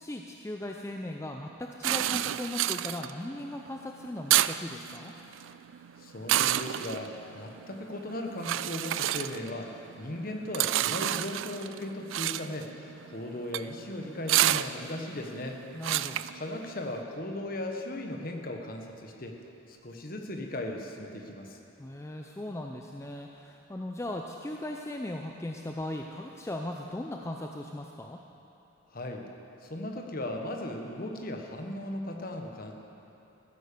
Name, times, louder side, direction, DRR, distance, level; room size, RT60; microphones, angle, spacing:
voice 1, 0.0-5.1 15.7-16.3 21.8-28.2, left 1 dB, 15° left, 2 dB, 0.4 m, -38 dB
sound 1, 1.8-17.0, right 13 dB, 70° right, 0.3 m, -30 dB
voice 2, 6.0-15.6 16.3-19.4 19.7-21.6 28.9-29.3 29.6-32.7, left 1 dB, 45° left, 3 dB, 1.2 m, -37 dB
14.5 x 10.0 x 6.8 m, 3.0 s
head